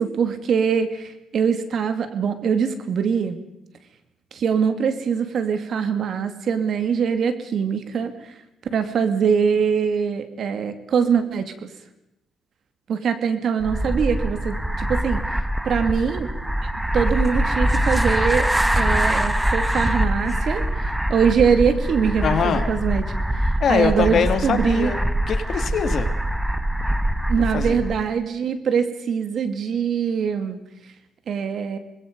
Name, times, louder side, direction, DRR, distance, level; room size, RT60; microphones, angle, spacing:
voice 1, 0.0-3.4 4.3-8.1 8.7-11.7 12.9-15.2 15.6-16.3 16.6-23.1 23.3-24.9 27.3-30.6 31.3-31.8, right 6 dB, 60° right, 9 dB, 2.5 m, -23 dB
sound 1, 13.6-28.1, right 1 dB, 5° right, 1.2 m, -23 dB
voice 2, 22.2-22.7 23.6-26.1 27.5-27.8, left 7 dB, 60° left, 9 dB, 2.2 m, -23 dB
25.5 x 21.0 x 5.3 m, 0.88 s
cardioid pair, 90°, 0 cm